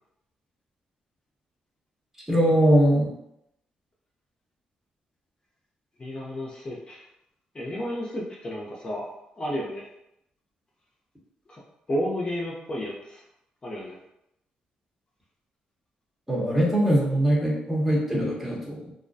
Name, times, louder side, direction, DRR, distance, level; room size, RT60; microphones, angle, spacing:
voice 1, 2.3-3.1 16.3-18.9, equal, 10° right, -4 dB, 0.9 m, -22 dB
voice 2, 6.0-7.0 7.5-9.1 9.4-9.9 11.5-11.6 11.9-13.2 13.6-14.0, equal, 30° left, -4 dB, 0.6 m, -32 dB
2.3 x 2.2 x 2.6 m, 0.81 s
cardioid pair, 70°, 3 cm